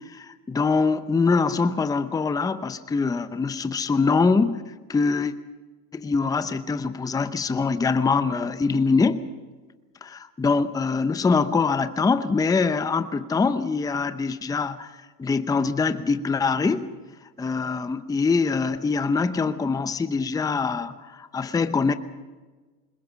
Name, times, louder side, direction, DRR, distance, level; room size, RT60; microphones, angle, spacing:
voice 1, 0.1-4.6 4.9-5.3 5.9-9.2 10.0-14.9 15.2-16.9 17.4-21.9, left 4 dB, 10° left, 12 dB, 0.7 m, -23 dB
25.5 x 21.5 x 5.7 m, 1.3 s
supercardioid pair, 120°, 48 cm